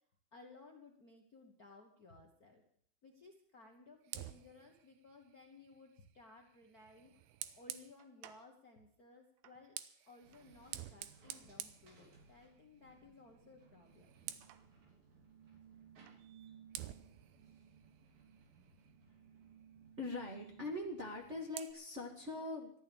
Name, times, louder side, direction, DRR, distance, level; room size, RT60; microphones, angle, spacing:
voice 1, 0.3-2.6 3.0-7.2 7.5-9.8 10.1-14.1, left 3 dB, 85° left, 1 dB, 0.8 m, -59 dB
Fire, 4.0-8.5 9.4-12.7 13.0-13.3 13.6-14.7 16.1-16.2 16.7-19.1 20.9-21.7, right 13 dB, 85° right, 2.7 m, -51 dB
sound 1, 10.2-21.3, right 7 dB, 70° right, 5.0 m, -62 dB
voice 2, 20.0-22.7, left 2 dB, 30° right, -2 dB, 1.3 m, -42 dB
14.0 x 11.5 x 7.2 m, 0.65 s
omnidirectional pair, 4.3 m